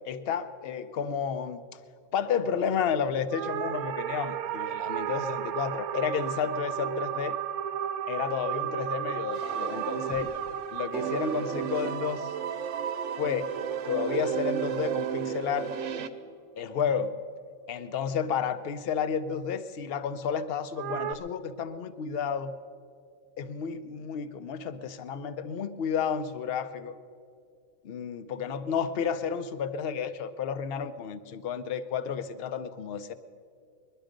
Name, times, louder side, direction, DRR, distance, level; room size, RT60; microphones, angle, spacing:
voice 1, 0.1-1.6 2.1-7.4 8.1-10.3 10.7-12.3 13.1-13.5 13.8-15.7 16.6-17.1 17.7-22.5 23.4-27.0 27.8-33.1, left 7 dB, 55° left, 12 dB, 0.7 m, -31 dB
sound 1, 3.3-13.8 20.8-21.1, right 10 dB, 85° right, 1.1 m, -34 dB
sound 2, 9.3-10.6 10.9-16.1, right 8 dB, 65° right, 1.0 m, -33 dB
21.5 x 12.0 x 5.1 m, 2.3 s
omnidirectional pair, 1.5 m